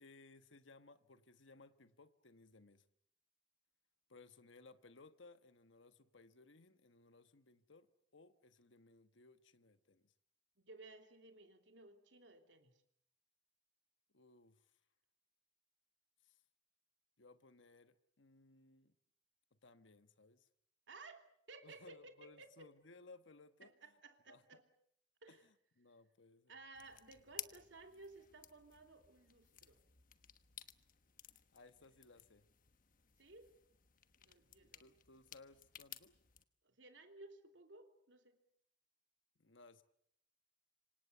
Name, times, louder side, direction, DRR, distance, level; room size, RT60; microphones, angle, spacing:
voice 1, 0.0-2.8 4.1-7.9 8.1-10.1 14.1-14.7 16.2-16.4 17.2-18.9 19.5-20.5 21.6-23.7 24.3-24.6 25.3-25.4 25.8-26.5 31.5-32.5 34.6-36.1 39.4-39.8, left 3 dB, 80° left, 11 dB, 1.3 m, -62 dB
voice 2, 10.6-12.8 20.9-22.7 23.6-24.6 25.2-25.4 26.5-29.8 33.2-33.6 34.2-34.9 36.6-38.4, right 3 dB, 75° right, 6 dB, 3.0 m, -58 dB
sound 1, 26.7-36.4, left 12 dB, 45° left, 1.2 m, -56 dB
27.0 x 25.5 x 6.9 m, 0.68 s
head